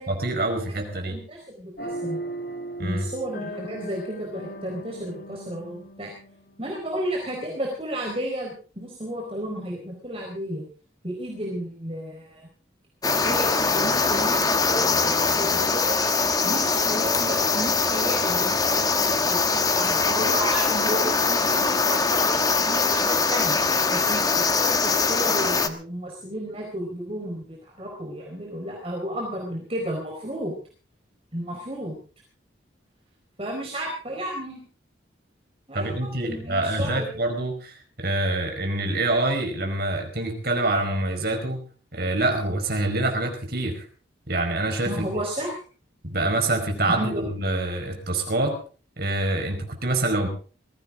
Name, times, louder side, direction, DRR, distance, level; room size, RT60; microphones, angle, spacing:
voice 1, 0.1-1.2 2.8-3.1 35.7-41.6 41.9-43.8 44.3-44.9 46.0-48.6 49.0-50.3, right 2 dB, 55° right, 4 dB, 5.0 m, -26 dB
voice 2, 1.1-2.2 2.8-6.1 6.6-10.6 11.0-12.5 13.2-16.0 16.4-23.6 23.9-30.6 31.3-31.9 33.4-34.6 35.7-37.1 44.9-45.5 46.8-47.2, right 1 dB, 30° right, -1 dB, 4.5 m, -33 dB
sound 1, 1.8-7.2, right 1 dB, 50° left, 2.3 m, -37 dB
sound 2, 13.0-25.7, left 4 dB, 20° left, 1.1 m, -22 dB
21.0 x 16.0 x 3.8 m, 0.39 s
head